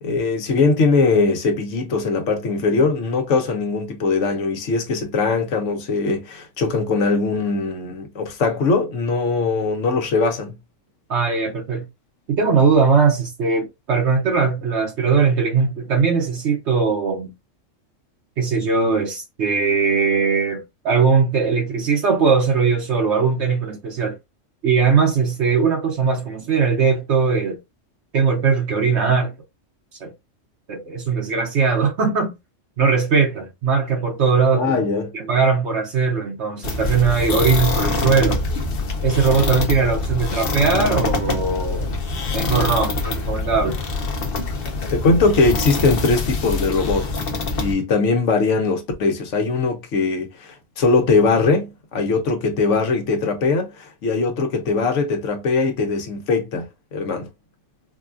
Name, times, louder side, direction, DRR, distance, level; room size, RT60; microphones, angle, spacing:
voice 1, 0.0-10.6 34.5-35.1 44.9-47.1 47.5-57.3, left 4 dB, 70° left, 1.2 m, -21 dB
voice 2, 11.1-11.8 12.3-17.3 18.4-24.2 24.6-27.6 28.1-29.3 30.0-30.1 30.7-32.3 32.8-34.9 35.1-38.4 39.0-43.8, right 5 dB, 60° right, 1.0 m, -20 dB
sound 1, 36.6-47.7, left 3 dB, 50° left, 0.9 m, -24 dB
4.8 x 2.3 x 2.5 m
omnidirectional pair, 1.4 m